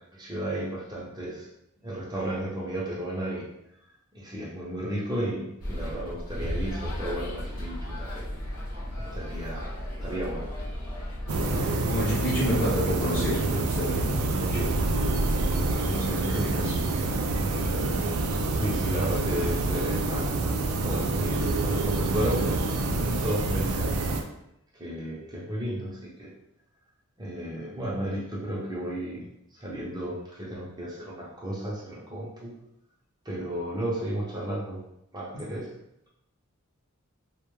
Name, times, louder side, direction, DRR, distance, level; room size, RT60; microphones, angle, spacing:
voice 1, 0.1-1.5 1.8-3.5 4.1-8.3 9.1-9.7 10.0-10.4 18.5-22.7 23.0-24.0 24.8-26.3 27.2-29.3 29.6-32.5 33.3-34.8 35.1-35.7, right 1 dB, 20° right, -6 dB, 0.6 m, -33 dB
sound 1, 5.6-11.7, equal, 75° left, 0.8 m, -34 dB
sound 2, 11.3-24.2, right 2 dB, 75° right, 0.3 m, -27 dB
voice 2, 11.9-14.7 15.8-16.8 35.3-35.4, equal, 40° left, -10 dB, 0.7 m, -30 dB
2.2 x 2.1 x 3.0 m, 0.82 s
head